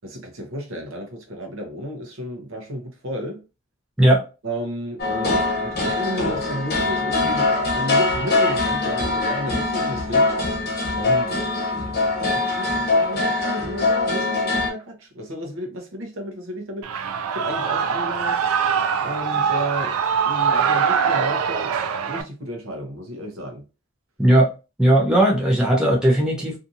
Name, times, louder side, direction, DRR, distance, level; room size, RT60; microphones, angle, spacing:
voice 1, 0.0-3.4 4.4-10.3 11.0-18.4 19.0-20.0 20.2-21.7 22.1-23.6, equal, 70° right, 0.8 m, -33 dB
sound 1, 5.0-14.7, left 3 dB, 45° left, 0.9 m, -22 dB
Shout / Cheering, 16.8-22.2, right 6 dB, 85° right, 0.4 m, -22 dB
voice 2, 24.2-24.5 24.8-26.6, right 1 dB, 5° right, 0.6 m, -17 dB
2.7 x 2.5 x 2.6 m
head